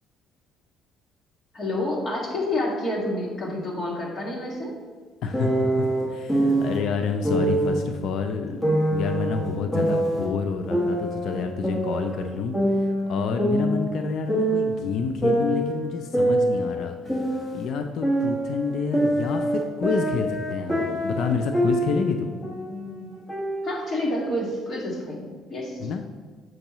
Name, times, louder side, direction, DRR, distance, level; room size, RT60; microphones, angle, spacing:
voice 1, 1.5-4.7 21.8-23.2 23.6-25.8, left 1 dB, 40° left, -2 dB, 1.8 m, -29 dB
voice 2, 5.2-17.0 17.3-22.4 25.8-26.0, left 5 dB, 70° left, 6 dB, 0.4 m, -29 dB
sound 1, 5.3-6.8 7.2-7.8 8.6-10.3 10.7-12.3 12.5-14.8 15.2-17.7 18.0-22.1 22.4-22.8 23.3-24.3, right 1 dB, 10° left, 1.6 m, -24 dB
7.7 x 5.4 x 3.0 m, 1.4 s
cardioid pair, 95°, 0 cm